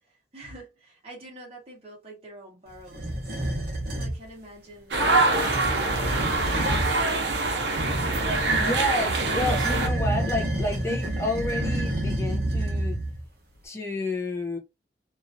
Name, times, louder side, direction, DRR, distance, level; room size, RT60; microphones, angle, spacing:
voice 1, 0.0-3.6 3.9-7.5, right 1 dB, 35° right, 1.3 m, -47 dB
sound 1, 2.9-4.2 5.3-7.0 7.7-13.2, right 1 dB, 55° right, 1.2 m, -29 dB
sound 2, 4.9-9.9, right 2 dB, 75° right, 0.7 m, -24 dB
voice 2, 8.2-13.0 13.6-14.6, left 1 dB, 15° left, 0.6 m, -30 dB
3.0 x 2.6 x 2.5 m
head